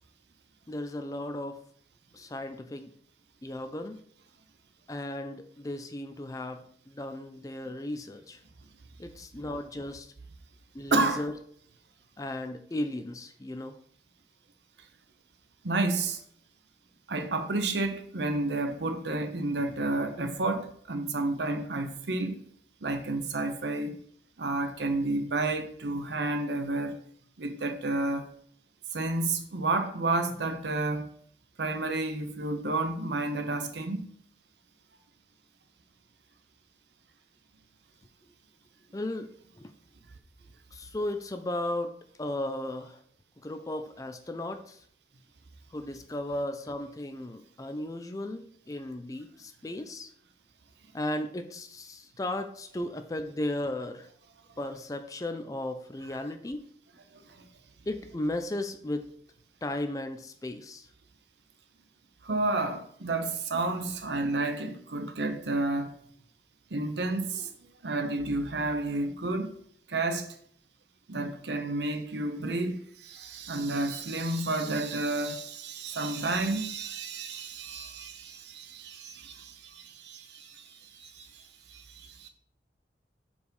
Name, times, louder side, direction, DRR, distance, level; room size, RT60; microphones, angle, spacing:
voice 1, 0.7-1.6 2.1-2.9 3.4-4.0 4.9-8.4 9.0-10.1 10.7-11.3 12.2-13.8 38.9-39.3 39.6-39.7 40.7-41.9 42.2-43.0 43.4-44.8 45.7-50.1 50.9-54.1 54.6-56.6 57.9-59.1 59.6-60.9, left 1 dB, 20° left, 0.4 m, -35 dB
voice 2, 10.9-11.2 15.6-16.2 17.1-22.4 22.8-24.0 24.4-26.9 27.4-28.2 28.9-31.1 31.6-34.0 62.2-65.9 66.7-67.5 67.8-69.5 69.9-70.3 71.1-82.3, right 2 dB, 75° right, 0.8 m, -31 dB
4.8 x 4.0 x 5.3 m
head